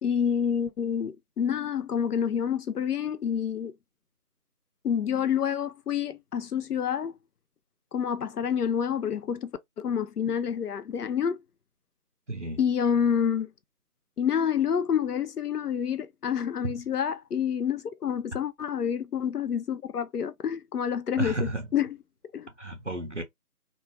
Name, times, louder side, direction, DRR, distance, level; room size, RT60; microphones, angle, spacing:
voice 1, 0.0-3.7 4.8-7.1 7.9-9.5 9.8-11.4 12.6-13.5 14.2-21.4 21.7-22.0 22.3-22.5, left 8 dB, 85° left, 0.5 m, -28 dB
voice 2, 12.3-12.6 16.6-16.7 21.2-21.7 22.6-23.2, right 2 dB, 55° right, 0.5 m, -32 dB
2.3 x 2.1 x 2.9 m
figure-of-eight pair, 175°, 45 cm